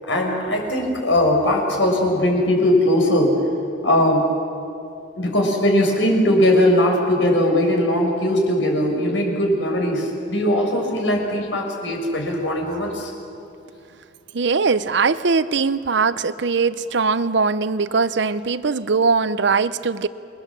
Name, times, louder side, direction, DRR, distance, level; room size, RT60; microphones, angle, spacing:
voice 1, 0.0-3.3 3.8-4.3 5.1-13.1, left 1 dB, 85° left, 1 dB, 6.1 m, -19 dB
voice 2, 14.3-20.1, right 4 dB, 65° right, 14 dB, 0.8 m, -20 dB
29.5 x 22.0 x 7.5 m, 2.6 s
head